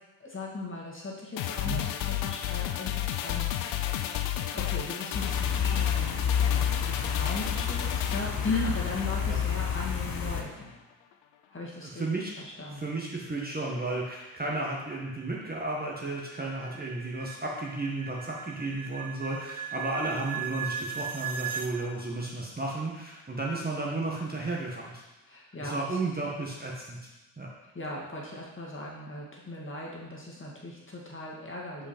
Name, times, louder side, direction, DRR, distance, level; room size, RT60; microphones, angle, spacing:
voice 1, 0.2-3.8 4.3-10.8 11.5-12.0 12.4-13.0 25.3-26.0 27.7-31.9, left 2 dB, 25° left, -4 dB, 2.1 m, -38 dB
sound 1, 1.4-9.9 10.3-10.4, left 11 dB, 75° left, 0.6 m, -33 dB
sound 2, 5.1-10.4, left 8 dB, 50° left, 1.0 m, -29 dB
voice 2, 11.9-12.3 12.6-25.0 25.6-27.1 27.4-27.5, right 2 dB, 20° right, -3 dB, 1.5 m, -33 dB
sound 3, 14.6-21.7, right 8 dB, 40° right, 0.7 m, -38 dB
5.0 x 4.9 x 4.4 m, 1.1 s
hypercardioid pair, 50°, 46 cm